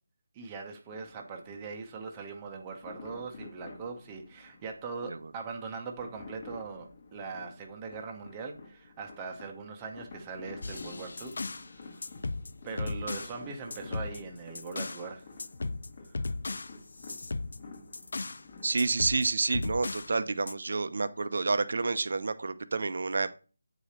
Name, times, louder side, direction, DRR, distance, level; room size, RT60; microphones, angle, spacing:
voice 1, 0.3-11.3 11.6-12.0 12.6-15.2 16.1-16.3, right 4 dB, 15° right, 1 dB, 0.8 m, -41 dB
sound 1, 0.9-18.9, left 3 dB, 35° left, 1.2 m, -51 dB
sound 2, 10.6-11.7 12.0-13.4 13.7-15.1 15.4-18.4 18.8-20.1 20.5-20.6, left 3 dB, 60° left, 0.4 m, -36 dB
voice 2, 18.6-23.3, right 3 dB, 50° right, 12 dB, 0.7 m, -29 dB
8.5 x 5.0 x 4.3 m, 0.35 s
figure-of-eight pair, 175°, 0 cm